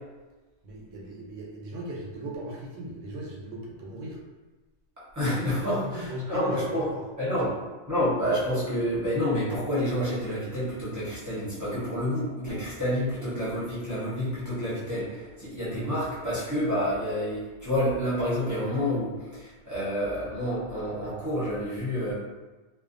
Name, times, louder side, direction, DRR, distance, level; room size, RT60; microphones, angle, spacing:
voice 1, 0.6-4.2 5.7-7.0, right 1 dB, 75° right, -1 dB, 0.9 m, -37 dB
voice 2, 5.1-6.9 7.2-7.6 7.9-22.1, equal, 15° right, -11 dB, 0.7 m, -29 dB
2.5 x 2.2 x 2.5 m, 1.2 s
omnidirectional pair, 1.4 m